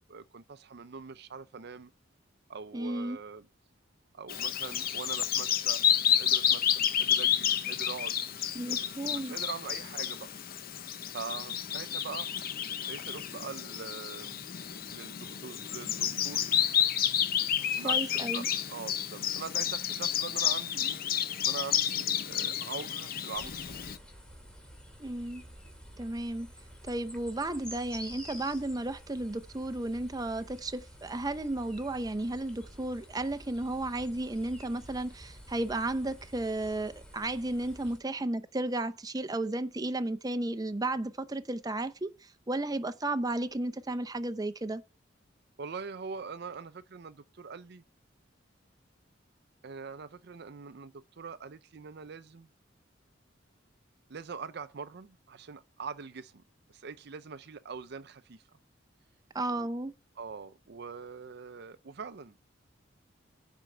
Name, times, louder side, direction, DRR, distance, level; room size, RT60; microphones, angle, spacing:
voice 1, 0.1-1.9 2.5-3.5 4.1-10.3 11.1-12.3 12.9-14.4 14.9-16.9 17.6-21.0 21.4-23.7 45.6-47.8 49.6-52.5 54.1-56.4 56.7-58.4 59.5-59.7 60.2-62.4, right 5 dB, 60° right, 0.5 m, -43 dB
voice 2, 2.7-3.2 8.5-9.4 17.8-18.5 25.0-25.4 26.0-26.5 26.8-44.8 59.3-59.9, right 2 dB, 20° right, 0.7 m, -33 dB
Bird vocalization bird call bird song, 4.3-24.0, left 9 dB, 50° left, 0.7 m, -30 dB
sound 1, 23.3-38.0, equal, 5° left, 2.4 m, -50 dB
9.8 x 4.5 x 7.8 m
head